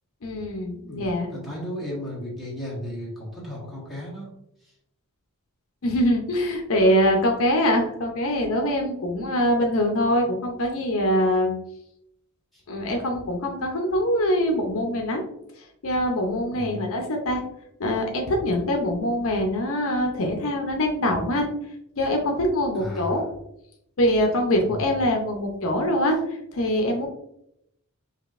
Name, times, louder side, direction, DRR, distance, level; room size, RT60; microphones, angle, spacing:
voice 1, 0.2-1.3 5.8-11.5 12.7-15.2 15.8-17.4 17.8-21.5 22.0-23.2 24.0-26.2 26.5-27.1, equal, 65° left, 2 dB, 0.6 m, -23 dB
voice 2, 0.9-4.3 4.6-4.7 12.5-12.6 16.5-16.9 22.7-23.3 24.6-24.9, equal, ahead, -6 dB, 1.5 m, -35 dB
4.9 x 2.8 x 2.4 m, 0.78 s
head